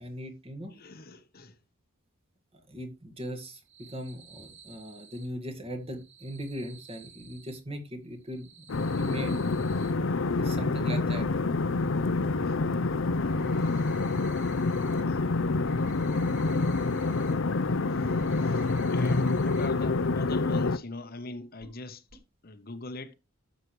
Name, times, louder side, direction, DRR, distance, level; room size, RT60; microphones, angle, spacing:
voice 1, 0.0-0.7 2.7-9.3 10.4-11.3, equal, 30° right, 1.8 m, -39 dB
voice 2, 0.7-1.6 12.1-13.3 13.7-13.9 14.7-15.6 17.9-23.1, left 2 dB, 45° left, 1.0 m, -43 dB
sound 1, 3.5-5.3 5.8-7.6 8.1-9.9 12.0-12.1 12.5-12.6 13.0-15.0 15.3-17.3 17.7-19.7 20.0-20.1 20.5-20.6 21.6-21.8 22.1-22.2, right 5 dB, 55° right, 3.8 m, -54 dB
sound 2, 8.7-20.8, left 3 dB, 65° left, 0.6 m, -27 dB
12.5 x 7.5 x 3.2 m
head